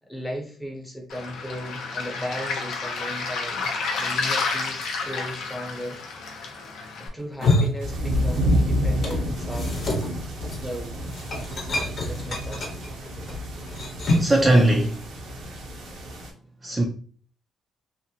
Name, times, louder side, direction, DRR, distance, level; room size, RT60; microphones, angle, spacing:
voice 1, 0.0-3.7 4.0-6.0 7.0-9.8 10.5-10.9 12.0-12.7, equal, 10° left, 0.8 m, -36 dB
Waves surf, 1.1-7.1, left 4 dB, 80° left, 0.6 m, -30 dB
sound 1, 7.2-8.6 8.9-14.4, left 2 dB, 50° left, 0.9 m, -28 dB
sound 2, 7.8-16.3, equal, 85° right, 0.8 m, -29 dB
voice 2, 14.2-15.1 16.6-16.8, right 1 dB, 20° right, 0.4 m, -19 dB
2.6 x 2.1 x 2.7 m
cardioid pair, 90°, 0 cm